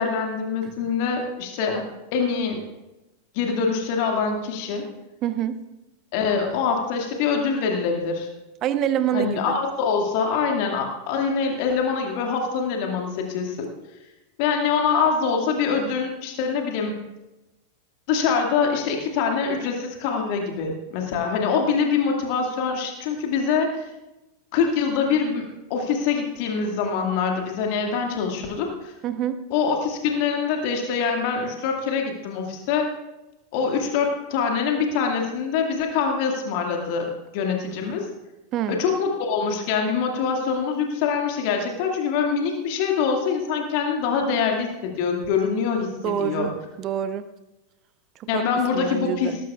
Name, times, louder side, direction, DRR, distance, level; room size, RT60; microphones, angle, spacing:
voice 1, 0.0-1.8 2.1-2.6 3.3-4.9 6.1-8.3 9.1-13.7 14.4-16.9 18.1-23.9 24.5-28.9 29.5-32.9 33.5-38.1 38.7-46.5 48.3-49.4, left 5 dB, 45° left, 2 dB, 2.1 m, -24 dB
voice 2, 5.2-5.6 8.6-9.6 29.0-29.3 38.5-38.8 46.0-46.5 46.8-47.3 48.3-48.5 48.7-49.4, right 10 dB, 35° right, 12 dB, 0.8 m, -26 dB
18.0 x 15.0 x 2.4 m, 1.0 s
figure-of-eight pair, 90°, 0 cm